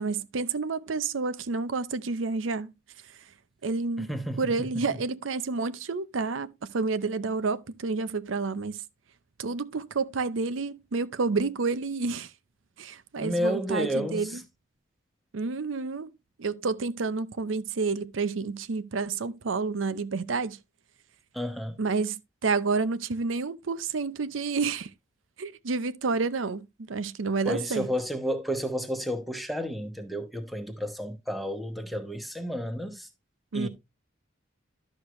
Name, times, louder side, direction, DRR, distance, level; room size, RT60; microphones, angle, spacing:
voice 1, 0.0-2.7 3.6-4.1 4.4-8.8 9.4-12.3 12.8-14.4 15.3-16.1 16.4-20.6 21.8-24.9 25.4-27.9 33.5-33.7, right 4 dB, 90° right, 0.6 m, -29 dB
voice 2, 4.0-4.9 13.2-14.4 21.3-21.8 27.4-33.1 33.5-33.7, equal, ahead, 1.1 m, -31 dB
11.5 x 6.4 x 3.1 m
head